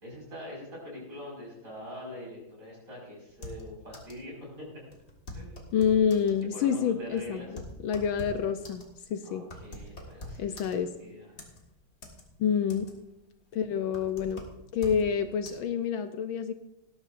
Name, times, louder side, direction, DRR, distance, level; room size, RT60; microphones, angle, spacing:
voice 1, 0.0-4.7 5.3-5.7 6.5-7.5 9.2-11.3, left 1 dB, 35° right, -2 dB, 5.7 m, -43 dB
sound 1, 3.3-4.3 4.5-4.6 4.9-6.4 6.9-11.0 11.4-12.2 12.5-13.1 13.5-15.1 15.5-15.6, left 1 dB, 30° left, 1.9 m, -44 dB
voice 2, 5.7-7.5 7.8-8.8 9.1-9.4 10.4-10.9 12.4-12.9 13.5-14.5 14.7-16.5, left 7 dB, 75° left, 9 dB, 1.4 m, -27 dB
18.5 x 12.5 x 2.6 m, 0.94 s
omnidirectional pair, 2.3 m